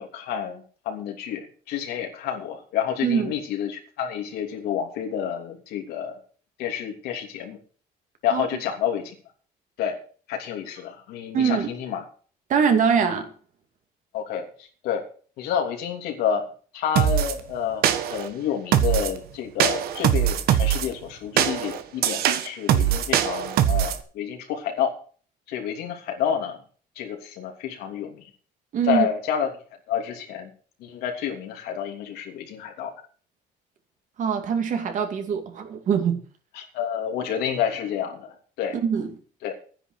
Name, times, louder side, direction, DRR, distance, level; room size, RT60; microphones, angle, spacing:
voice 1, 0.0-6.2 6.6-7.6 8.2-9.1 9.8-10.0 10.3-12.0 14.1-14.4 14.8-15.0 15.4-16.5 16.7-24.9 25.5-26.6 26.9-28.3 28.8-29.5 29.9-30.5 30.8-32.9 36.5-38.8 39.4-39.5, left 8 dB, 85° left, 3.1 m, -29 dB
voice 2, 3.0-3.3 8.3-8.5 11.3-11.7 12.5-13.3 28.7-29.1 34.2-36.2 38.8-39.1, right 7 dB, 50° right, 2.5 m, -23 dB
sound 1, 17.0-17.3 17.8-18.3 18.7-19.2 19.6-20.9 21.4-24.0, right 10 dB, 70° right, 1.3 m, -22 dB
10.0 x 9.8 x 6.4 m
cardioid pair, 130°, 16 cm